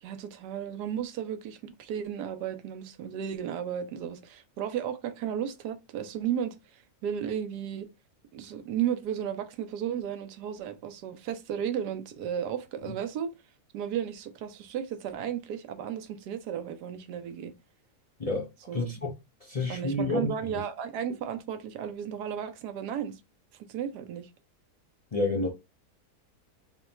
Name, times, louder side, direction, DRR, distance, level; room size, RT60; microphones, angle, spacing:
voice 1, 0.0-7.9 8.3-13.3 13.7-17.5 18.7-18.9 19.7-23.2 23.6-24.3, right 9 dB, 90° right, 1.2 m, -34 dB
voice 2, 18.7-19.1 19.5-20.6 25.1-25.5, left 2 dB, 30° left, 0.7 m, -29 dB
3.9 x 2.2 x 4.2 m
omnidirectional pair, 1.7 m